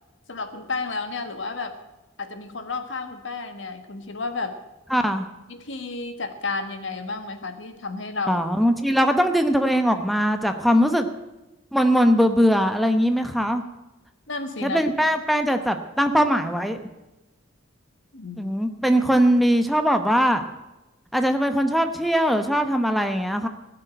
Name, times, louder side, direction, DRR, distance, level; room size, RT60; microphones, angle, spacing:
voice 1, 0.3-1.8 2.2-4.6 5.5-8.4 8.9-9.0 14.3-14.8 18.1-18.5, left 3 dB, 75° left, 8 dB, 1.5 m, -32 dB
voice 2, 4.9-5.3 8.3-11.1 11.7-13.6 14.6-16.8 18.4-20.5 21.1-23.5, equal, ahead, 7 dB, 0.9 m, -21 dB
16.5 x 6.8 x 9.0 m, 1.0 s
head